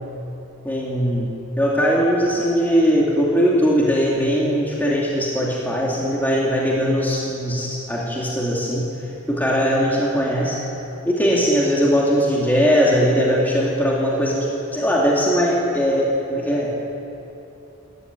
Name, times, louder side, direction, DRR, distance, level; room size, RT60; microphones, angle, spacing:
voice 1, 0.6-1.3 1.6-8.8 9.3-10.6 11.1-14.5 14.7-16.7, equal, 10° left, -5 dB, 2.5 m, -20 dB
20.0 x 14.0 x 9.4 m, 3.0 s
head